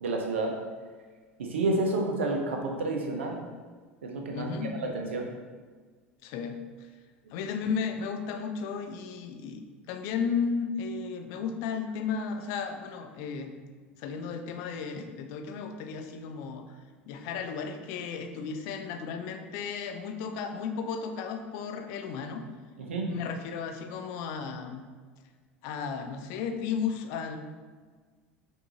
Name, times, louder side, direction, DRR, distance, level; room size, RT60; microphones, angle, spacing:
voice 1, 0.0-0.5 1.4-3.4 4.0-4.5 4.8-5.3 22.8-23.1, right 2 dB, 75° right, 2 dB, 0.7 m, -29 dB
voice 2, 4.3-4.7 6.2-6.6 7.3-9.6 9.9-13.5 14.0-16.6 17.1-22.4 23.0-24.8 25.6-27.4, left 6 dB, 55° left, 6 dB, 0.5 m, -34 dB
5.9 x 2.6 x 2.8 m, 1.5 s
figure-of-eight pair, 75°, 7 cm